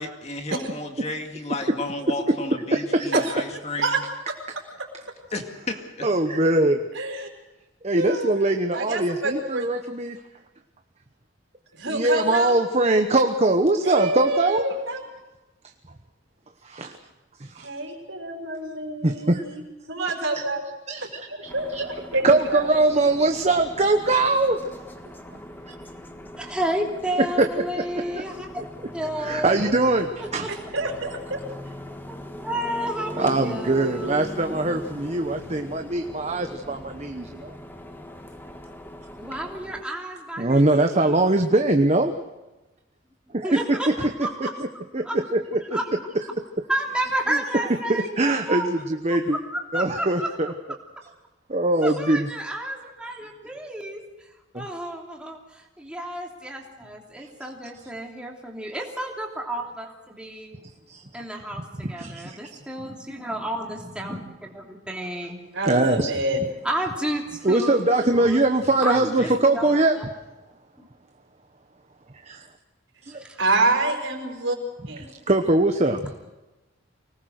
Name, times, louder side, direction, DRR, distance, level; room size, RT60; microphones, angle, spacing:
voice 1, 0.0-4.0 5.3-6.1 68.9-69.4, left 2 dB, 35° left, 4 dB, 2.2 m, -33 dB
voice 2, 2.7-3.1 6.0-6.8 7.8-10.2 11.9-14.7 16.6-17.0 17.4-17.7 19.0-19.4 20.9-21.8 22.2-24.7 27.2-28.3 28.6-28.7 29.2-30.5 33.2-37.5 40.4-42.1 43.3-44.5 44.9-45.1 45.3-45.4 47.3-49.4 49.7-50.5 51.5-52.3 53.0-53.2 54.5-54.7 60.9-61.0 61.8-62.5 65.6-66.1 67.4-70.0 72.2-72.5 73.1-73.2 75.3-76.1, right 2 dB, 35° right, 5 dB, 1.0 m, -22 dB
voice 3, 6.9-7.3 7.9-8.3 8.7-9.7 11.7-12.6 13.8-15.0 17.6-19.6 19.9-20.6 21.3-22.7 30.5-31.4 65.5-66.4 73.4-74.6 74.9-75.0, right 2 dB, 80° right, 2 dB, 4.8 m, -27 dB
sound 1, 21.4-39.8, equal, 10° left, 1.5 m, -40 dB
voice 4, 26.4-28.6 28.9-29.8 30.4-30.5 32.1-34.2 39.2-41.0 43.4-43.9 44.2-44.7 45.0-45.2 45.7-45.8 46.7-48.7 49.1-49.4 49.7-50.1 51.8-54.0 54.5-60.6 61.1-61.6 61.9-65.4 66.6-68.4 68.8-70.0 70.8-70.9 73.1-73.4, right 1 dB, 5° right, -1 dB, 3.1 m, -31 dB
25.0 x 19.0 x 6.5 m, 1.1 s
head